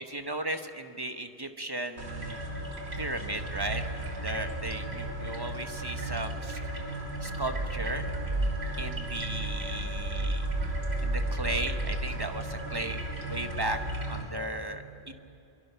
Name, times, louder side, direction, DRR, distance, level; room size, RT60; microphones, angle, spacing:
voice 1, 0.0-2.4 3.0-6.6 7.2-8.1 8.8-10.5 11.0-13.8 14.1-15.1, right 1 dB, 25° right, 7 dB, 0.9 m, -36 dB
sound 1, 2.0-14.2, right 1 dB, 75° right, 2.4 m, -33 dB
23.0 x 22.5 x 5.7 m, 2.8 s
omnidirectional pair, 1.1 m